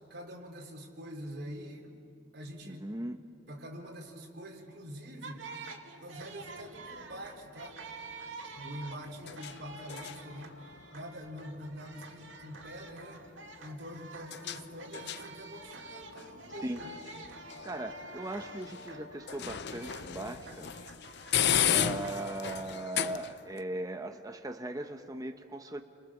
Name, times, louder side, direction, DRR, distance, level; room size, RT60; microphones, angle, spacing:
voice 1, 0.1-2.0 2.3-2.9 3.5-5.5 6.0-7.8 8.6-10.6 10.9-13.2 13.6-17.0, equal, 60° right, 0 dB, 4.0 m, -45 dB
voice 2, 2.6-3.2 16.6-16.8 17.6-20.7 21.7-25.8, right 1 dB, 20° right, 5 dB, 1.0 m, -38 dB
sound 1, 5.2-22.6, right 3 dB, 90° right, 2.4 m, -48 dB
sound 2, 6.2-23.6, left 9 dB, 60° left, 0.6 m, -37 dB
29.5 x 25.0 x 7.3 m, 2.4 s
head